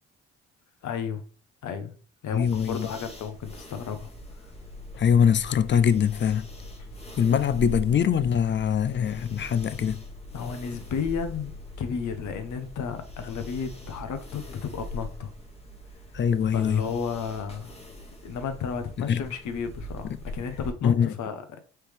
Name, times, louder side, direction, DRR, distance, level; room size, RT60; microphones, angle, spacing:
voice 1, 0.8-1.2 1.6-1.9 2.2-4.1 10.3-11.5 11.8-15.3 16.5-17.8 18.2-21.4, left 6 dB, 60° left, 0.9 m, -33 dB
voice 2, 2.3-2.9 5.0-6.5 7.2-10.0 16.1-16.8 19.1-19.2 20.8-21.1, left 8 dB, 35° left, 0.4 m, -23 dB
sound 1, 2.3-20.7, left 1 dB, 20° left, 1.2 m, -43 dB
Bus, 4.5-15.1, left 3 dB, 85° left, 1.1 m, -45 dB
4.5 x 3.1 x 3.4 m
hypercardioid pair, 50°, 33 cm